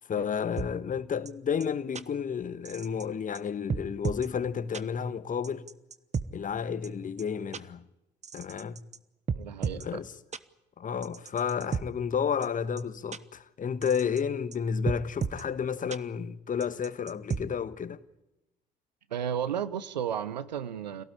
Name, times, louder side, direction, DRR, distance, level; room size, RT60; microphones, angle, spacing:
voice 1, 0.1-5.7 6.3-7.9 8.3-8.8 9.7-10.1 10.8-18.0, left 7 dB, 40° left, 1.4 m, -31 dB
sound 1, 0.6-0.7 1.3-1.4 1.6-1.7 1.9-2.0 2.6-3.0 3.3-3.4 3.7-4.3 4.7-4.8 5.4-6.3 6.8-6.9 7.2-7.3 7.5-7.6 8.2-9.0 9.3-9.8 10.3-10.4 11.0-11.8 12.4-12.5 12.8-12.9 13.1-13.2 13.8-14.2 14.5-14.6 14.9-15.4 15.9-16.0 16.6-17.4, right 6 dB, 35° right, 1.2 m, -33 dB
voice 2, 9.3-10.0 19.1-21.0, right 9 dB, 85° right, 0.9 m, -33 dB
26.5 x 18.0 x 9.9 m
figure-of-eight pair, 50°, 21 cm